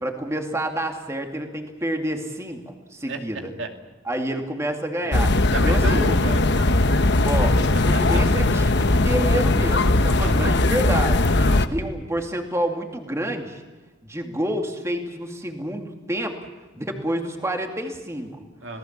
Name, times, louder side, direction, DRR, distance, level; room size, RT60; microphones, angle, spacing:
voice 1, 0.0-3.5 4.0-5.3 5.6-6.1 7.2-13.6 14.0-16.4 16.7-18.4, right 1 dB, 15° right, 3 dB, 2.4 m, -29 dB
sound 1, 5.1-11.7, left 2 dB, 60° left, 1.0 m, -19 dB
voice 2, 5.5-7.0 7.9-8.0 10.2-10.6 11.4-11.6 18.6-18.8, right 2 dB, 65° right, 4 dB, 2.6 m, -32 dB
27.5 x 18.5 x 7.4 m, 1.3 s
head